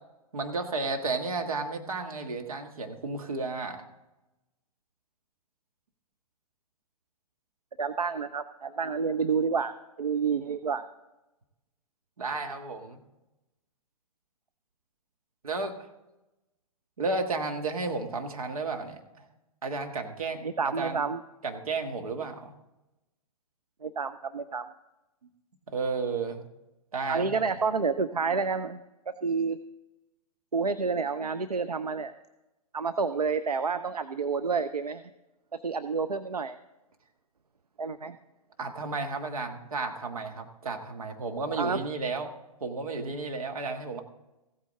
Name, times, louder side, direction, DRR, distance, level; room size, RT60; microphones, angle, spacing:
voice 1, 0.3-3.8 12.2-13.0 15.4-15.8 17.0-19.2 19.6-21.0 21.4-22.5 25.7-26.4 26.9-27.4 38.6-42.3 42.6-44.0, right 3 dB, 65° right, 4 dB, 1.6 m, -33 dB
voice 2, 7.8-9.7 10.0-10.8 20.4-21.2 23.8-24.6 27.1-28.8 29.1-29.6 30.5-32.1 32.7-35.0 35.6-36.6 37.8-38.2 41.6-41.8, right 5 dB, 80° right, 11 dB, 0.6 m, -29 dB
15.5 x 8.6 x 3.7 m, 1.0 s
figure-of-eight pair, 115°, 19 cm